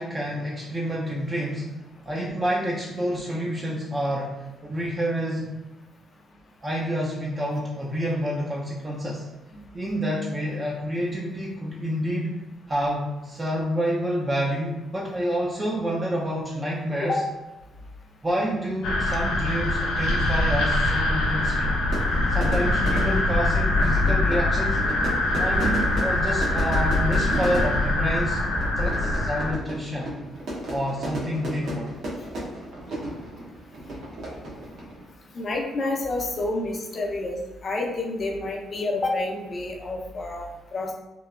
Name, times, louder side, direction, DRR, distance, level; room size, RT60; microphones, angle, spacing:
voice 1, 0.0-1.7 2.0-5.6 6.6-9.2 9.7-12.3 12.7-17.3 18.2-21.7 22.3-24.8 25.4-28.4 28.8-30.1 30.7-31.9, equal, 25° right, -3 dB, 0.4 m, -28 dB
sound 1, 18.8-29.5, left 2 dB, 90° left, 0.4 m, -23 dB
Fire / Fireworks, 21.1-35.1, right 1 dB, 70° right, 0.8 m, -35 dB
voice 2, 35.3-40.9, left 2 dB, 45° left, 0 dB, 0.6 m, -29 dB
3.0 x 2.1 x 2.4 m, 1.1 s
cardioid pair, 90°, 0 cm